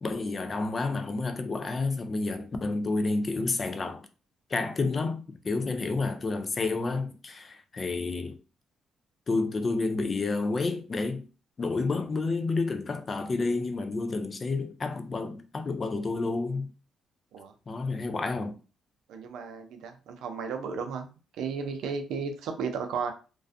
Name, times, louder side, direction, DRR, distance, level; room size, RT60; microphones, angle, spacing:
voice 1, 0.0-4.1 4.5-8.4 9.3-11.2 11.6-16.7 17.7-18.6, left 3 dB, 35° left, 0.4 m, -30 dB
voice 2, 19.1-21.1 21.4-23.1, right 5 dB, 85° right, 0.5 m, -34 dB
2.4 x 2.2 x 2.4 m
cardioid pair, 90°, 0 cm